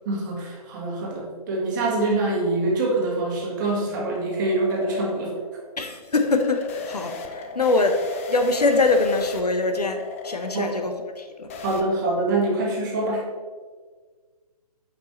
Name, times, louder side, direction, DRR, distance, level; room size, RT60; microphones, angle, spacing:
voice 1, 0.0-5.3 10.5-10.8 11.6-13.3, right 2 dB, 30° right, -2 dB, 1.6 m, -25 dB
sound 1, 2.9-11.8, left 4 dB, 20° left, 0.4 m, -37 dB
voice 2, 5.8-8.0 8.3-11.5, left 3 dB, 85° left, 6 dB, 0.9 m, -23 dB
8.0 x 5.3 x 3.1 m, 1.5 s
figure-of-eight pair, 140°, 20 cm